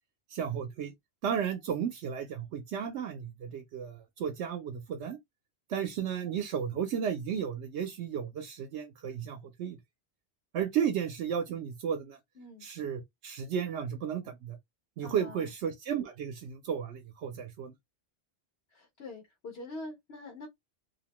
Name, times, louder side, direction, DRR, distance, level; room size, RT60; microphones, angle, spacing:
voice 1, 0.3-0.9 1.2-5.2 5.7-9.8 10.5-12.2 12.6-14.6 15.0-17.7, right 8 dB, 90° right, 0.9 m, -34 dB
voice 2, 12.3-12.7 15.0-15.5 18.7-20.5, left 2 dB, 65° left, 1.2 m, -44 dB
2.7 x 2.1 x 2.9 m
omnidirectional pair, 1.1 m